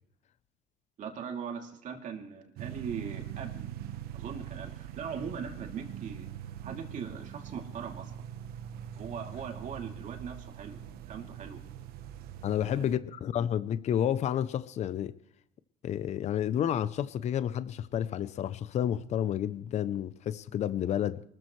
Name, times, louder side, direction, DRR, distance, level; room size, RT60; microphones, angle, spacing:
voice 1, 1.0-3.7 4.1-6.3 6.6-8.1 8.9-10.8 11.1-11.6 12.5-13.0, right 6 dB, 50° right, 2 dB, 2.9 m, -40 dB
sound 1, 2.6-13.0, right 10 dB, 65° right, 1.1 m, -43 dB
voice 2, 12.4-15.1 15.8-21.2, left 10 dB, 40° left, 14 dB, 0.7 m, -30 dB
23.5 x 14.0 x 3.2 m, 0.69 s
cardioid pair, 110°, 17 cm